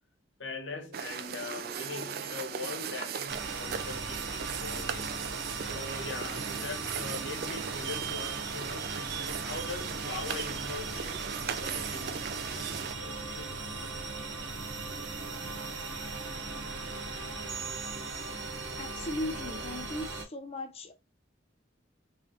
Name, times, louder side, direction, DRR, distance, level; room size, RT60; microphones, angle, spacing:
voice 1, 0.4-5.1 5.7-13.9, left 3 dB, 85° left, 1.1 m, -42 dB
sound 1, 0.9-12.9, right 8 dB, 55° right, 0.4 m, -38 dB
sound 2, 3.3-20.3, right 3 dB, 90° right, 1.0 m, -38 dB
voice 2, 18.8-20.9, left 1 dB, 35° left, 0.5 m, -37 dB
3.8 x 3.3 x 2.8 m
head